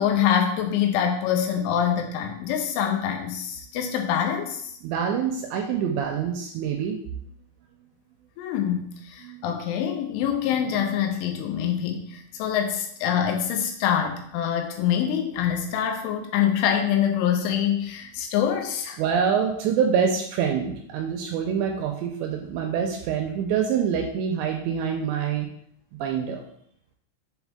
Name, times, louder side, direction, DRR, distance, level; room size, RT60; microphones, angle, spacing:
voice 1, 0.0-4.7 8.4-19.0, left 9 dB, 85° left, 3 dB, 3.2 m, -25 dB
voice 2, 4.8-7.0 9.2-9.5 19.0-25.5 26.0-26.4, right 7 dB, 85° right, 3 dB, 2.6 m, -26 dB
7.2 x 4.0 x 3.6 m, 0.67 s
omnidirectional pair, 5.6 m